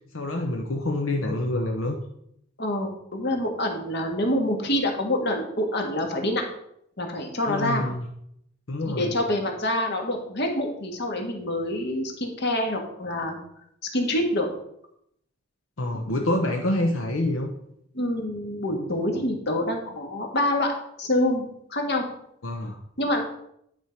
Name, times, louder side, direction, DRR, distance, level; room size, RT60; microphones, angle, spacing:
voice 1, 0.1-2.0 7.5-8.1 8.7-9.1 15.8-17.5 22.4-22.8, left 1 dB, 80° left, 2 dB, 0.9 m, -26 dB
voice 2, 2.6-6.4 7.0-7.9 8.8-13.4 13.9-14.5 17.9-20.7 21.0-22.0 23.0-23.2, left 1 dB, 55° left, 3 dB, 1.7 m, -26 dB
10.5 x 5.5 x 4.5 m, 0.73 s
head